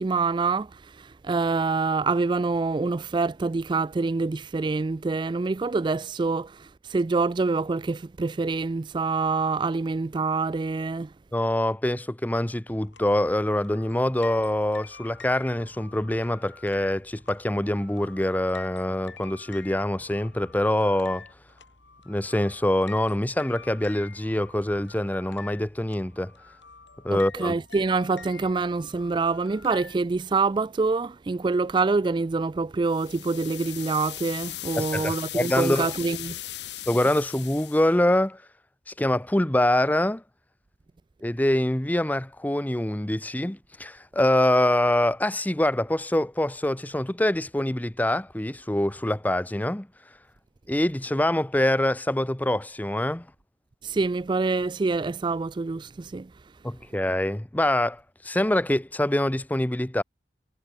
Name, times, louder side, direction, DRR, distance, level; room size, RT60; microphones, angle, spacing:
voice 1, 0.0-11.1 27.1-36.4 53.8-56.3, right 4 dB, 25° right, 0.3 m, -26 dB
voice 2, 11.3-21.3 22.1-26.3 27.0-27.6 34.8-35.9 36.9-38.4 38.9-40.2 41.2-49.9 50.7-53.3 56.6-60.0, left 1 dB, 10° left, 0.7 m, -25 dB
sound 1, 12.7-30.0, left 5 dB, 85° left, 6.9 m, -48 dB
sound 2, 32.9-37.9, left 14 dB, 70° left, 2.2 m, -37 dB
head